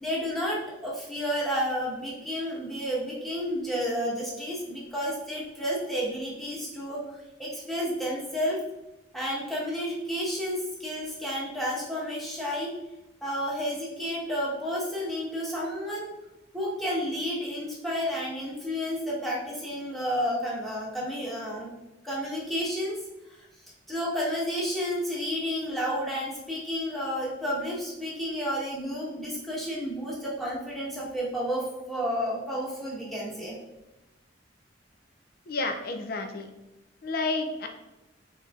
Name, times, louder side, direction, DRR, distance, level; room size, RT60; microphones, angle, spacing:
voice 1, 0.0-7.0 7.4-8.6 9.1-12.7 13.2-16.1 16.5-21.7 22.0-23.0 23.9-33.5, equal, ahead, -6 dB, 1.1 m, -31 dB
voice 2, 35.5-36.5 37.0-37.7, left 3 dB, 55° left, 5 dB, 0.5 m, -30 dB
4.3 x 3.9 x 2.4 m, 0.98 s
head